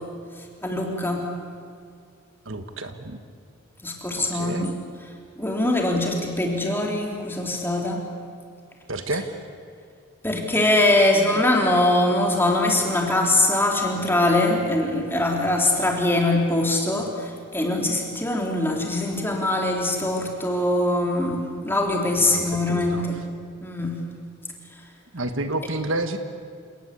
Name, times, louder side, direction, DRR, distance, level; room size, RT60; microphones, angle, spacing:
voice 1, 0.6-1.3 3.8-4.7 5.4-8.0 10.2-23.2 23.6-24.0, left 1 dB, 10° left, 1 dB, 3.2 m, -22 dB
voice 2, 2.4-3.2 4.2-4.7 8.9-9.2 22.2-23.1 25.1-26.2, right 2 dB, 60° right, 8 dB, 1.4 m, -30 dB
28.5 x 18.5 x 8.4 m, 2.2 s
head